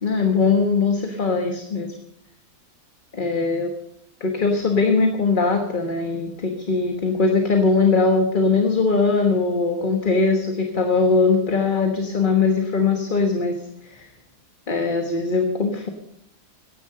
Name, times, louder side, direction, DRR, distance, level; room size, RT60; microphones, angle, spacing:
voice 1, 0.0-1.9 3.1-3.7 4.2-13.6 13.9-14.1 14.7-15.9, left 4 dB, 35° left, 4 dB, 1.3 m, -20 dB
15.5 x 10.5 x 6.7 m, 0.77 s
omnidirectional pair, 1.7 m